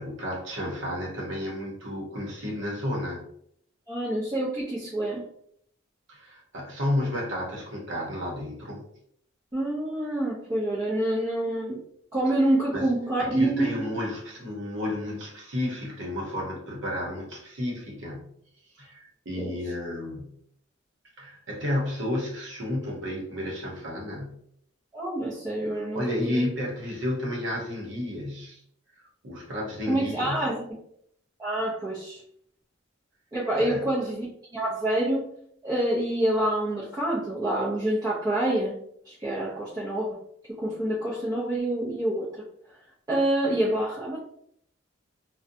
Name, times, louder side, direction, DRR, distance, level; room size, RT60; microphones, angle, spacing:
voice 1, 0.0-3.2 6.1-8.8 12.7-12.9 13.2-18.3 18.7-20.4 21.2-24.4 25.6-28.6 29.2-30.5 33.6-33.9, left 1 dB, 70° right, -1 dB, 0.8 m, -32 dB
voice 2, 3.9-5.2 9.5-11.8 12.1-13.8 19.4-19.5 24.9-26.4 29.9-30.6 31.4-32.2 33.3-35.2 35.6-38.8 39.1-40.2 40.5-42.4 43.1-44.2, right 1 dB, 20° right, -9 dB, 0.5 m, -27 dB
2.6 x 2.1 x 2.5 m, 0.68 s
head